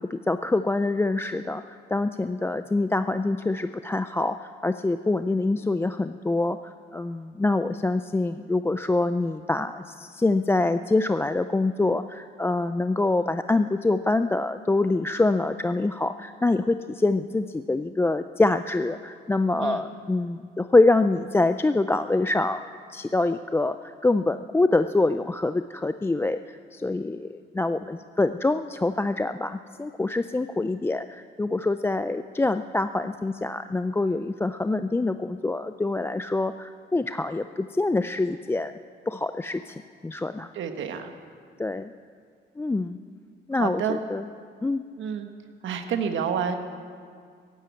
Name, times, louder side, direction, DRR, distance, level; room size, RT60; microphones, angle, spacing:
voice 1, 0.0-22.6 22.9-38.7 39.1-40.5 41.6-41.9 42.6-43.0 43.5-44.3 44.6-44.8, left 2 dB, 10° left, 10 dB, 0.4 m, -25 dB
voice 2, 40.5-41.1 43.5-44.0 45.0-45.3 45.6-46.6, right 7 dB, 75° right, 7 dB, 1.4 m, -29 dB
15.0 x 11.0 x 8.3 m, 2.1 s
cardioid pair, 90°, 20 cm